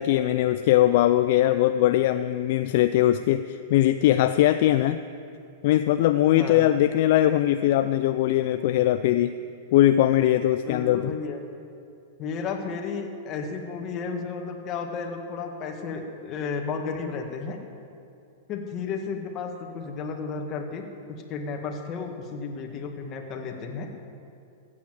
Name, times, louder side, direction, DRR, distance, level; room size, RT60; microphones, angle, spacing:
voice 1, 0.0-5.0 5.6-9.3 9.7-11.0, left 13 dB, 60° left, 10 dB, 0.5 m, -21 dB
voice 2, 6.3-6.7 10.6-11.4 12.2-17.6 18.5-23.9, left 5 dB, 35° left, 2 dB, 2.0 m, -33 dB
15.5 x 8.6 x 7.7 m, 2.5 s
hypercardioid pair, 115°, 0 cm